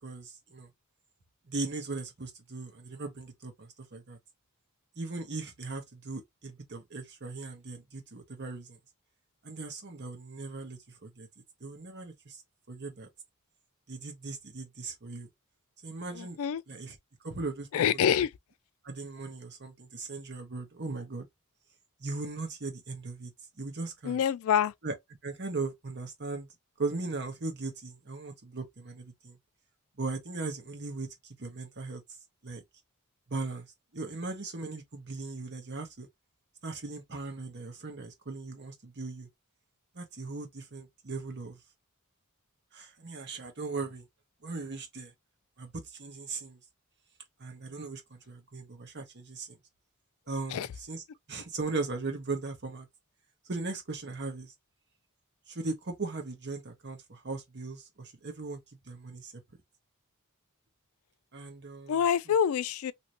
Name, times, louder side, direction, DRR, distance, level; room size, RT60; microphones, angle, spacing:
voice 1, 0.0-0.7 1.5-4.2 5.0-8.8 9.4-11.3 11.6-12.4 12.7-13.1 13.9-15.3 15.8-16.4 16.7-17.0 17.2-18.1 18.8-21.3 22.0-23.3 23.6-24.2 24.8-24.9 25.2-26.5 26.8-29.4 30.0-32.0 32.4-32.6 33.3-33.7 33.9-36.1 36.6-39.3 39.9-41.6 42.7-44.1 44.4-45.1 45.6-46.6 47.4-49.6 50.3-51.0 51.3-52.9 53.5-54.5 55.5-58.6 58.9-59.3 61.3-62.0, right 3 dB, 50° right, 1.0 m, -38 dB
voice 2, 16.1-16.6 17.7-18.3 24.0-24.7 50.5-50.7 61.9-62.9, left 8 dB, 70° left, 0.3 m, -26 dB
2.9 x 2.6 x 2.9 m
head